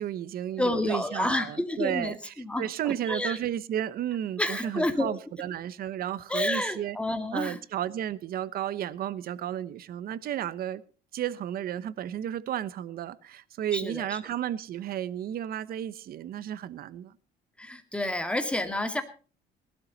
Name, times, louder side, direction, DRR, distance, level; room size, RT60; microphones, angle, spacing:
voice 1, 0.0-7.0 7.3-10.8 11.1-17.1, right 11 dB, 60° right, 1.0 m, -33 dB
voice 2, 0.6-2.6 3.1-3.4 4.4-5.2 6.3-7.6 13.7-14.0 17.6-19.0, left 1 dB, 5° left, 2.3 m, -29 dB
19.0 x 12.5 x 4.1 m
cardioid pair, 110°, 17 cm